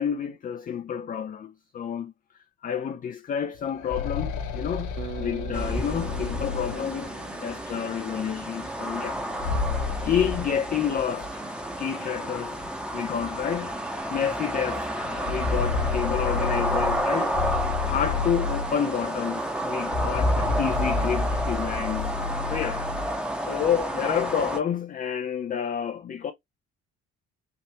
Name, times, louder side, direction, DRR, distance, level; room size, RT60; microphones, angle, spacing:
voice 1, 0.0-2.1 2.6-7.1 7.4-9.2 10.0-12.6 12.9-13.7 14.1-14.9 15.3-17.4 17.8-22.2 22.5-22.9 23.4-26.3, left 8 dB, 25° left, 0.4 m, -29 dB
sound 1, 3.6-7.4 9.1-11.3 11.6-11.7 12.6-12.7 13.2-13.3 15.0-19.1 19.8-23.2, left 4 dB, 60° left, 0.7 m, -30 dB
Bass guitar, 5.0-9.1, right 8 dB, 80° right, 0.5 m, -42 dB
sound 2, 5.5-24.6, right 1 dB, 5° right, 0.9 m, -31 dB
3.4 x 2.6 x 2.9 m
figure-of-eight pair, 45°, 35 cm